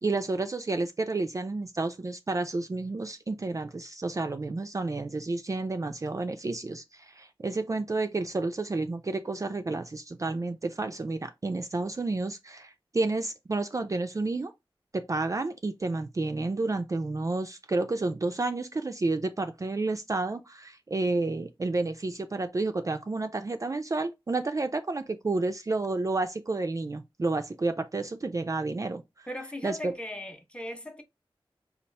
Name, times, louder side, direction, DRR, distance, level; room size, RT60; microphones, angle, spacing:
voice 1, 0.0-14.5 14.9-29.3 29.6-30.0, right 3 dB, 35° right, 0.3 m, -30 dB
voice 2, 29.3-31.0, left 1 dB, 10° left, 0.7 m, -38 dB
4.1 x 2.4 x 3.2 m
wide cardioid pair, 75°, 9 cm